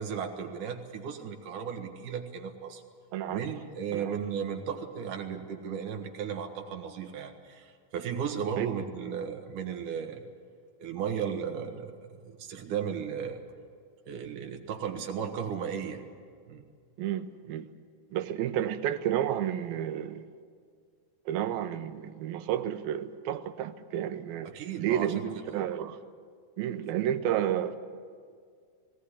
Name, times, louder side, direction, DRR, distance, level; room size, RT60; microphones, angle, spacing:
voice 1, 0.0-2.8 3.3-10.3 10.8-13.4 14.1-16.0 16.5-16.7 24.5-25.2, right 7 dB, 65° right, 2.9 m, -35 dB
voice 2, 3.1-3.5 3.9-4.2 8.6-8.7 17.0-17.7 18.1-20.3 21.3-26.0 26.6-27.8, right 10 dB, 90° right, 2.8 m, -31 dB
20.5 x 17.5 x 9.9 m
omnidirectional pair, 4.1 m